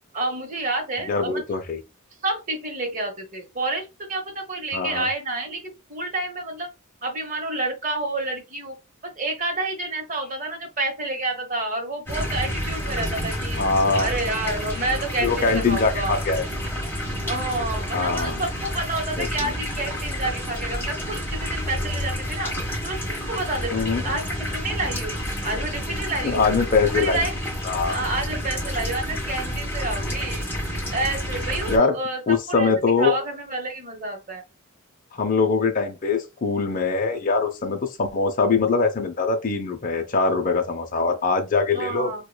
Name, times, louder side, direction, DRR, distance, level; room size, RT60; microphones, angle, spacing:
voice 1, 0.1-1.4 2.2-6.7 7.0-8.8 9.0-13.6 14.0-16.2 17.2-22.5 22.8-25.2 25.4-26.5 26.9-27.3 27.9-30.4 30.9-34.4 41.7-42.3, right 2 dB, 35° right, 1.0 m, -29 dB
voice 2, 1.1-1.8 4.7-5.1 13.6-14.1 15.2-16.4 17.9-18.4 19.2-19.5 23.7-24.2 26.2-27.2 27.6-28.0 31.7-31.9 32.3-33.1 35.1-42.1, left 4 dB, 40° left, 0.5 m, -22 dB
sound 1, 12.1-31.8, equal, 10° left, 1.3 m, -29 dB
4.6 x 2.2 x 2.2 m
head